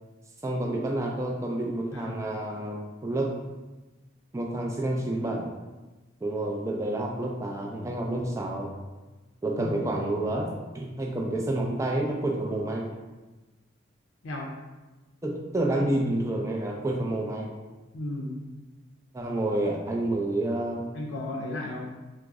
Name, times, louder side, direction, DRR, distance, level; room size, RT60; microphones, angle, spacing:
voice 1, 0.4-3.3 4.3-5.5 6.2-8.7 9.4-10.5 10.7-12.9 15.2-17.6 19.1-20.8, right 1 dB, 15° right, 0 dB, 0.3 m, -29 dB
voice 2, 1.9-2.2 9.6-9.8 14.2-14.5 17.9-18.5 20.9-21.8, left 1 dB, 85° left, -1 dB, 0.5 m, -34 dB
3.6 x 2.0 x 3.4 m, 1.2 s
head